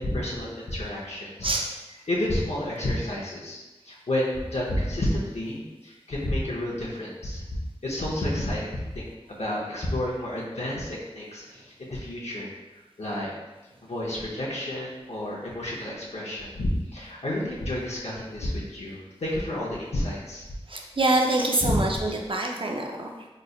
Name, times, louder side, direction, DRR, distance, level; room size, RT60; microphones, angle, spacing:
voice 1, 0.0-1.5 2.1-7.4 7.8-12.5 13.0-13.3 13.8-20.4 21.6-21.8, left 1 dB, 80° left, -5 dB, 0.7 m, -30 dB
voice 2, 20.7-23.3, right 2 dB, 50° right, 0 dB, 0.6 m, -25 dB
3.9 x 3.1 x 2.3 m, 1.1 s
wide cardioid pair, 50°, 11 cm